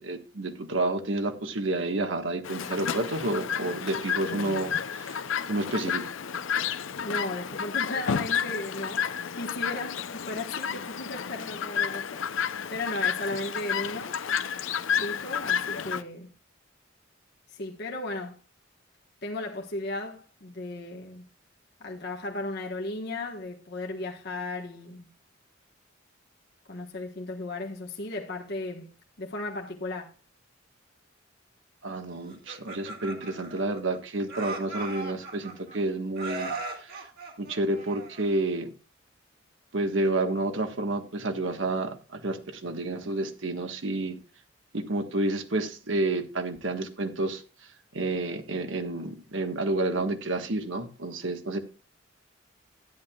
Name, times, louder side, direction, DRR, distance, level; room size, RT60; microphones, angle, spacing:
voice 1, 0.0-6.1 31.8-37.1 37.4-38.7 39.7-44.2 44.7-47.4 47.9-51.6, right 2 dB, 70° right, 1.4 m, -30 dB
Chirp tweet, 2.4-16.0, left 7 dB, 75° left, 0.6 m, -31 dB
voice 2, 7.0-14.2 14.9-16.3 17.5-18.4 19.2-21.2 21.8-25.1 26.7-28.9 29.2-30.1, left 2 dB, 55° left, 1.3 m, -35 dB
Laughter, 32.3-34.0 34.3-35.8 36.2-38.4, right 2 dB, 50° right, 2.0 m, -38 dB
13.0 x 10.5 x 2.3 m
head